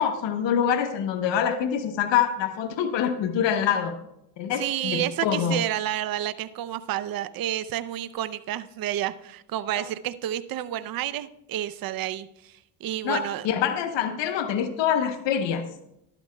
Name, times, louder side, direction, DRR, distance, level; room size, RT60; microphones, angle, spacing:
voice 1, 0.0-3.9 4.4-5.6 9.8-9.9 13.0-15.7, left 8 dB, 70° left, 7 dB, 0.9 m, -25 dB
voice 2, 4.5-13.5, right 12 dB, 50° right, 14 dB, 0.6 m, -30 dB
12.0 x 12.0 x 2.2 m, 0.83 s
cardioid pair, 95°, 45 cm